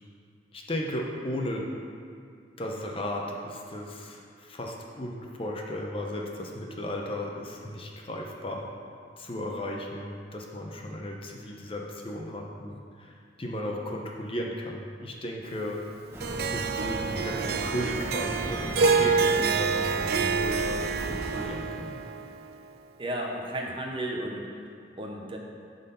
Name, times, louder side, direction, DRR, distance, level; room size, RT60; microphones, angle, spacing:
voice 1, 0.5-1.7 2.6-8.7 9.2-13.1 13.4-15.8 16.5-22.0, left 1 dB, 30° left, 0 dB, 0.8 m, -35 dB
sound 1, 16.1-21.5, equal, 15° right, 1.1 m, -36 dB
Harp, 16.2-22.6, right 5 dB, 55° right, 0.4 m, -27 dB
voice 2, 23.0-25.4, right 1 dB, 30° right, 0 dB, 0.8 m, -34 dB
10.5 x 4.1 x 5.5 m, 2.3 s
head